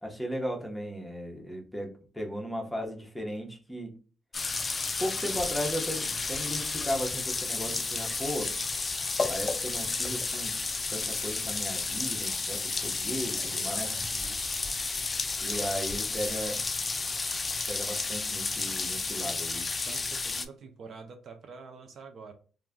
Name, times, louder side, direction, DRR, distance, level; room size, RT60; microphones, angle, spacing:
voice 1, 0.0-3.9 5.0-8.5 9.3-10.5 10.9-13.9 15.4-16.6 17.7-19.6, equal, 5° left, 0 dB, 0.8 m, -36 dB
sound 1, 4.3-20.5, left 3 dB, 30° left, 0.3 m, -32 dB
voice 2, 13.4-14.4 15.4-15.7 19.1-19.3 19.9-22.3, right 5 dB, 55° right, 6 dB, 0.5 m, -46 dB
2.3 x 2.1 x 3.5 m, 0.38 s
cardioid pair, 90°, 0 cm